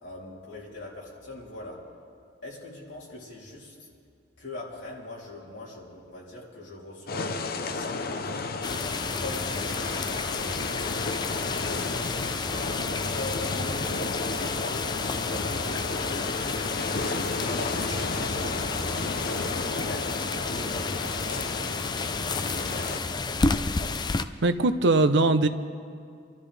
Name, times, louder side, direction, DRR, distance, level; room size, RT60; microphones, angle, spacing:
voice 1, 0.0-1.8 2.4-3.9 4.4-8.5 9.0-10.9 13.0-16.6 17.2-19.2 19.8-23.2, left 2 dB, 70° left, -5 dB, 3.3 m, -42 dB
sound 1, 7.1-23.0, left 3 dB, 55° left, 0.7 m, -33 dB
sound 2, 8.6-24.2, left 4 dB, 25° left, 0.4 m, -31 dB
voice 2, 24.4-25.5, right 2 dB, 65° right, 10 dB, 0.6 m, -21 dB
26.0 x 12.5 x 3.4 m, 2.3 s
head